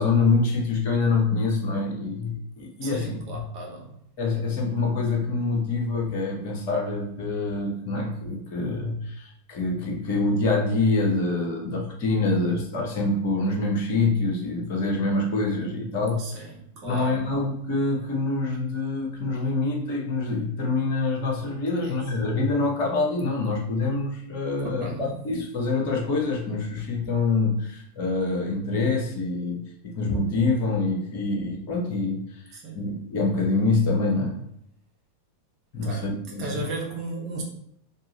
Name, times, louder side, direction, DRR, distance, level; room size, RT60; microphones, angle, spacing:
voice 1, 0.0-3.4 4.2-16.4 16.8-34.4 35.7-36.7, left 3 dB, 45° left, 0 dB, 1.0 m, -26 dB
voice 2, 2.8-4.0 16.2-17.3 21.8-22.0 24.8-25.2 32.5-32.9 35.8-36.1 36.4-37.4, right 2 dB, 40° right, -1 dB, 1.1 m, -35 dB
3.6 x 3.0 x 2.9 m, 0.71 s
figure-of-eight pair, 90°, 0 cm